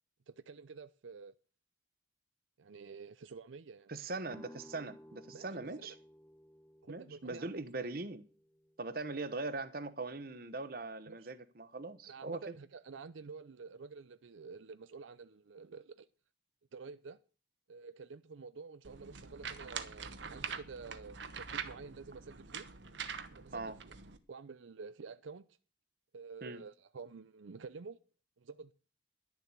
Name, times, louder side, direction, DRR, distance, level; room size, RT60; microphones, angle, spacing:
voice 1, 0.3-1.3 2.6-3.9 5.3-6.0 6.8-7.5 7.8-7.9 11.1-11.3 12.0-16.1 16.7-17.2 17.7-22.7 23.3-23.9 24.3-25.5 26.1-28.0 28.4-28.7, right 4 dB, 90° right, 0.5 m, -49 dB
voice 2, 3.9-5.9 6.9-8.2 8.8-12.4 23.5-23.8 26.4-26.6, right 3 dB, 50° right, 1.0 m, -41 dB
sound 1, 4.3-10.0, equal, 10° left, 0.8 m, -58 dB
sound 2, 18.8-24.2, right 6 dB, 75° right, 1.1 m, -44 dB
11.0 x 7.2 x 8.2 m
head